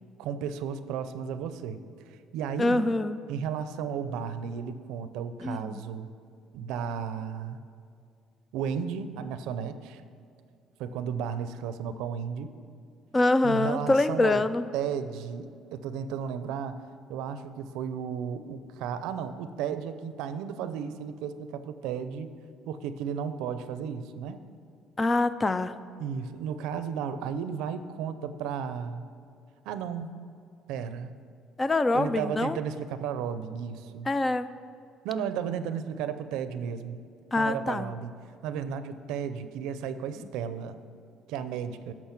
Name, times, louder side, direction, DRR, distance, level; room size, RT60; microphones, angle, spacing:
voice 1, 0.2-1.8 2.1-2.9 3.3-6.1 6.5-7.6 8.5-10.0 10.8-12.5 13.4-14.4 14.7-16.8 17.1-22.3 22.7-24.4 26.0-29.0 29.6-30.1 30.7-31.1 31.9-34.1 35.0-37.0 37.3-38.1 38.4-40.8 41.3-41.9, right 7 dB, 85° right, 11 dB, 0.5 m, -34 dB
voice 2, 2.6-3.2 5.4-5.8 13.1-14.6 25.0-25.7 31.6-32.6 34.1-34.5 37.3-37.9, left 2 dB, 20° left, 13 dB, 0.4 m, -25 dB
10.5 x 6.3 x 5.9 m, 2.4 s
cardioid pair, 125°, 0 cm